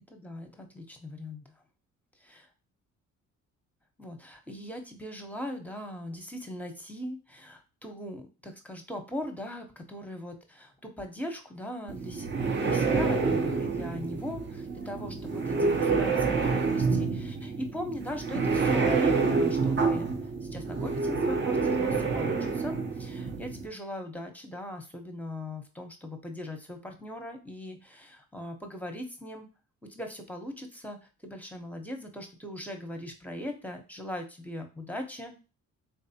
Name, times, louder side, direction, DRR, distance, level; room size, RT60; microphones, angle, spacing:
voice 1, 0.1-1.4 2.3-2.4 4.0-12.3 12.6-20.1 20.4-29.5 29.9-35.4, left 1 dB, 5° left, 4 dB, 0.8 m, -40 dB
sound 1, 11.9-23.7, right 4 dB, 40° right, 0.7 m, -28 dB
3.7 x 3.3 x 2.8 m, 0.31 s
cardioid pair, 90°, 30 cm